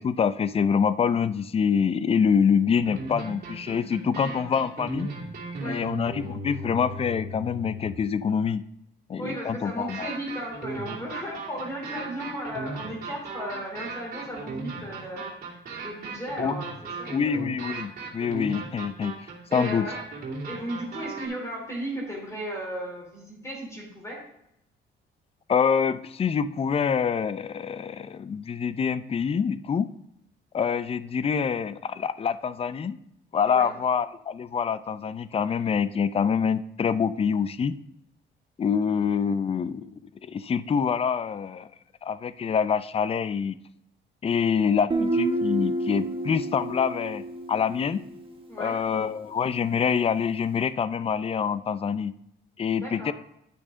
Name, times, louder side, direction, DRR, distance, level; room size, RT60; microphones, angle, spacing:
voice 1, 0.0-5.1 5.6-8.6 9.1-10.1 16.4-16.5 17.1-19.9 25.5-29.9 30.5-33.0 33.3-37.7 38.6-39.9 40.2-41.7 42.0-43.6 44.2-47.2 47.5-48.0 48.6-52.1 52.6-53.1, left 6 dB, 30° left, 15 dB, 0.4 m, -26 dB
sound 1, 2.7-8.0 9.9-21.3, right 3 dB, 50° right, 2.6 m, -36 dB
voice 2, 9.2-15.3 15.8-17.4 19.5-20.0 20.4-24.2 33.4-33.7 48.5-48.8 52.7-53.1, equal, 15° left, -2 dB, 3.3 m, -35 dB
Guitar, 44.9-48.5, right 2 dB, 25° right, 1.3 m, -29 dB
10.0 x 6.1 x 3.7 m, 0.78 s
cardioid pair, 90°, 20 cm